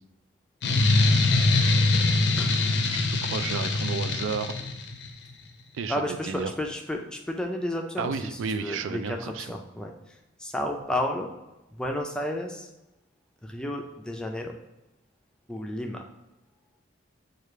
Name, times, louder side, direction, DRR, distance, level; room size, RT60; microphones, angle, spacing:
sound 1, 0.6-5.1, left 2 dB, 60° left, 0.5 m, -23 dB
voice 1, 2.9-4.5 5.7-6.0 6.2-6.5 8.0-9.5, right 5 dB, 90° right, 10 dB, 0.4 m, -32 dB
voice 2, 5.9-11.4 11.7-12.7 13.4-14.5 15.5-16.0, left 1 dB, 5° left, 2 dB, 0.4 m, -32 dB
4.9 x 2.4 x 4.3 m, 1.0 s
head